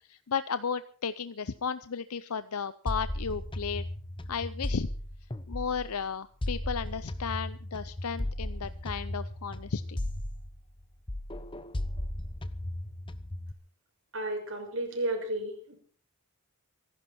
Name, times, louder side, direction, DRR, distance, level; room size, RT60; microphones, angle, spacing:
voice 1, 0.1-3.8 4.3-4.9 5.5-10.0, left 6 dB, 90° left, 13 dB, 0.7 m, -34 dB
sound 1, 2.9-6.0 6.4-10.8 11.1-13.5, left 1 dB, 20° left, 0.8 m, -36 dB
voice 2, 14.1-15.7, right 1 dB, 65° right, 3 dB, 6.1 m, -33 dB
24.5 x 12.0 x 4.4 m, 0.43 s
head